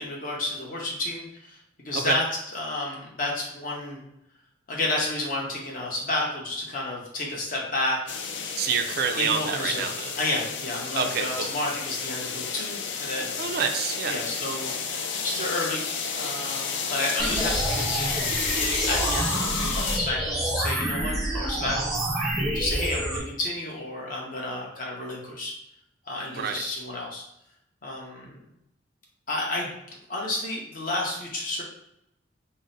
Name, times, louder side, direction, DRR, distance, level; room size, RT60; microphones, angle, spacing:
voice 1, 0.0-2.3 2.5-4.0 4.7-8.0 9.2-9.9 10.2-13.3 14.1-14.7 15.2-18.3 18.9-21.9 22.5-25.5 26.0-27.2 27.8-28.2 29.3-29.7 30.1-31.6, left 2 dB, 45° left, -2 dB, 0.9 m, -31 dB
sound 1, 8.1-20.0, left 5 dB, 70° left, 0.4 m, -31 dB
voice 2, 8.6-10.1 11.0-11.5 13.4-14.2 21.6-21.8 26.3-26.6, right 6 dB, 50° right, 6 dB, 0.3 m, -28 dB
sound 2, 17.2-23.2, right 1 dB, ahead, 0.6 m, -28 dB
3.8 x 2.0 x 3.9 m, 0.81 s
head